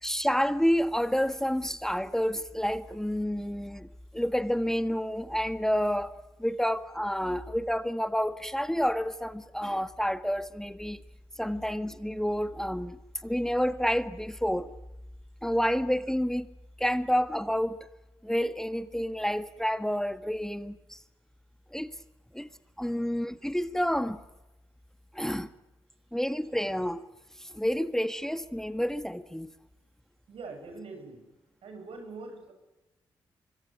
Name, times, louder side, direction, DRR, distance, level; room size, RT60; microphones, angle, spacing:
voice 1, 0.0-3.9 4.1-6.1 6.4-11.0 11.4-14.7 15.4-16.5 16.8-17.8 18.2-21.0 21.7-22.0 22.3-22.5 22.8-24.2 25.1-25.5 26.1-27.0 27.4-29.5, equal, 5° left, 1.8 m, -29 dB
voice 2, 30.3-31.3 31.6-32.5, right 3 dB, 70° right, 8.0 m, -43 dB
25.0 x 24.0 x 9.4 m
supercardioid pair, 45°, 10 cm